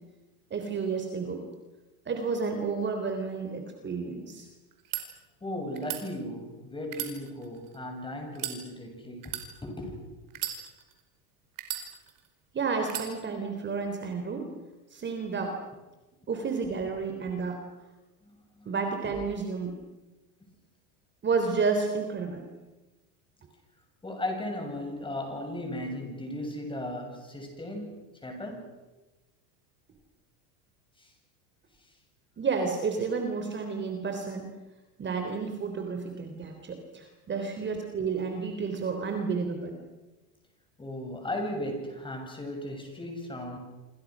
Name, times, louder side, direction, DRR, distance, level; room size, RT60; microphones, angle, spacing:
voice 1, 0.5-1.4 2.1-4.5 12.5-14.5 14.9-15.6 16.3-17.6 18.7-19.8 21.2-22.4 32.4-34.5 35.0-39.7, right 5 dB, 25° right, 5 dB, 3.6 m, -31 dB
sound 1, 4.7-5.0 5.7-6.0 6.8-7.8 8.3-8.6 9.2-9.5 10.3-11.0 11.6-12.3 12.9-13.1, right 12 dB, 45° right, 5.1 m, -35 dB
voice 2, 5.4-10.0 18.2-18.8 24.0-28.7 31.0-31.1 31.8-31.9 37.4-37.5 40.8-43.6, left 1 dB, 10° left, 4 dB, 7.3 m, -36 dB
27.5 x 26.5 x 6.3 m, 1.1 s
supercardioid pair, 120°, 45 cm